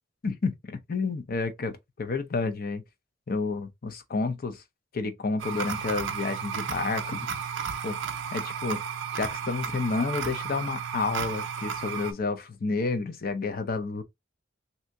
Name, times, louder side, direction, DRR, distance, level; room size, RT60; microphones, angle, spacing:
voice 1, 0.2-1.7 2.0-2.8 3.3-4.6 4.9-7.3 7.8-8.0 8.3-8.8 9.1-14.0, left 4 dB, 45° left, 0.5 m, -30 dB
sound 1, 5.4-12.1, right 7 dB, 65° right, 0.5 m, -33 dB
3.3 x 2.8 x 2.6 m
head